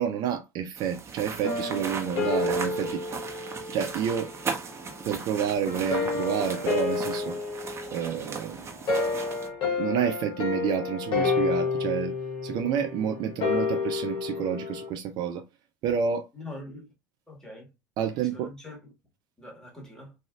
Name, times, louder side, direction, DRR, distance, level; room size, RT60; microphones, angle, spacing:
voice 1, 0.0-3.3 3.7-4.3 5.1-7.4 7.9-8.6 9.8-12.1 12.4-15.4 15.8-16.3 18.0-18.5, right 8 dB, 50° right, 0.5 m, -29 dB
sound 1, 0.8-9.5, right 5 dB, 30° right, 1.0 m, -38 dB
sound 2, 1.4-4.3 5.7-14.9, left 4 dB, 50° left, 0.9 m, -30 dB
voice 2, 16.3-16.9 17.3-17.7 18.0-18.9 19.4-20.1, left 1 dB, 5° left, 1.5 m, -43 dB
3.3 x 2.5 x 2.4 m
figure-of-eight pair, 70°, 10 cm